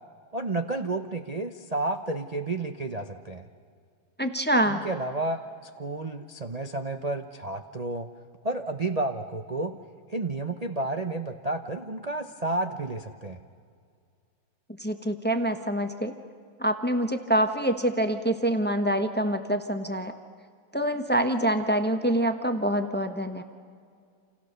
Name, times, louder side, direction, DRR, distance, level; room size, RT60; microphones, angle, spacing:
voice 1, 0.3-3.4 4.6-8.1 8.4-9.8 10.1-13.4, right 2 dB, 70° right, 5 dB, 0.3 m, -31 dB
voice 2, 4.2-4.8 14.8-16.1 16.6-20.1 20.7-23.4, right 1 dB, 10° left, 7 dB, 0.6 m, -26 dB
29.0 x 28.0 x 6.8 m, 2.2 s
omnidirectional pair, 2.4 m